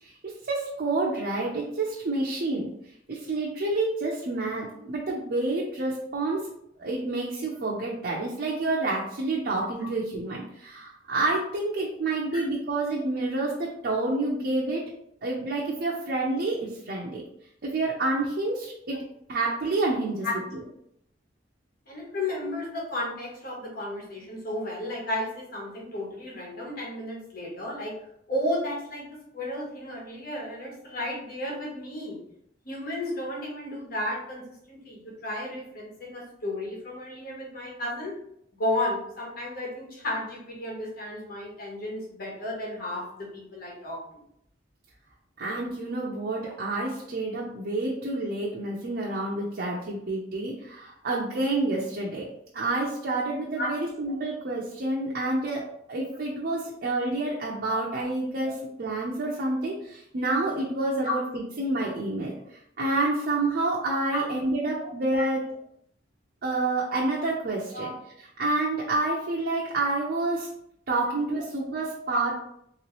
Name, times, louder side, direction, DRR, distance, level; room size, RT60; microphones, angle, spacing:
voice 1, 0.0-2.7 3.1-6.4 6.8-14.8 15.2-17.2 17.6-19.0 19.3-20.3 45.4-52.3 52.5-62.3 62.8-65.4 66.4-67.9 68.4-70.5 70.9-72.3, right 2 dB, 60° right, -4 dB, 0.6 m, -28 dB
voice 2, 21.9-27.9 28.3-32.2 32.6-38.1 38.5-44.0 53.6-53.7 56.1-56.2 58.4-58.5 61.0-61.1 64.1-64.2 65.1-65.3 67.7-67.9 71.4-71.5 72.1-72.2, left 1 dB, 55° left, -3 dB, 1.2 m, -33 dB
3.3 x 2.9 x 3.1 m, 0.73 s
head